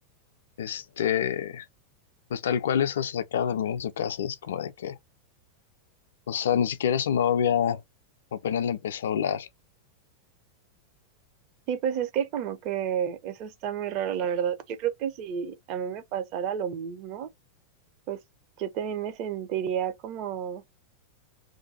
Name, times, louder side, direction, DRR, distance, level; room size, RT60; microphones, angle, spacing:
voice 1, 0.6-1.7 2.3-5.0 6.3-7.8 8.3-9.5, left 8 dB, 60° left, 0.3 m, -27 dB
voice 2, 11.7-17.3 18.1-18.2 18.6-20.6, right 8 dB, 40° right, 0.6 m, -30 dB
2.6 x 2.2 x 4.0 m
figure-of-eight pair, 90°, 0 cm